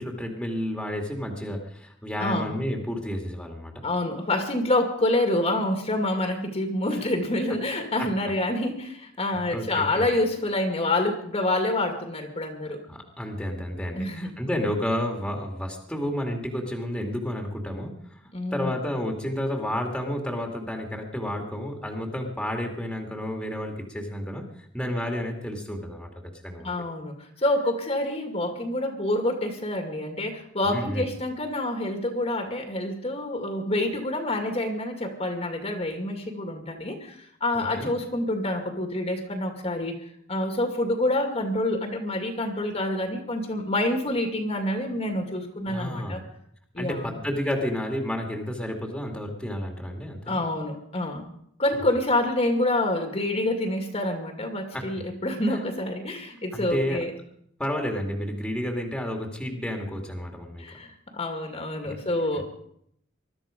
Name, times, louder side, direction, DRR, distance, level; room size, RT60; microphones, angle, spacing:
voice 1, 0.0-3.8 8.0-8.1 9.3-10.1 12.9-18.2 18.5-24.5 24.7-26.1 26.4-26.8 30.7-31.0 37.5-37.9 45.7-46.2 46.8-50.4 54.7-54.8 56.5-57.0 57.6-60.7 61.9-62.0, equal, 5° left, 2 dB, 2.3 m, -31 dB
voice 2, 3.8-12.8 13.9-14.3 18.3-18.8 26.6-40.0 40.3-46.2 46.7-47.1 50.3-51.2 51.6-57.1 60.6-62.4, left 1 dB, 35° left, 4 dB, 2.2 m, -27 dB
21.0 x 12.5 x 5.2 m, 0.69 s
head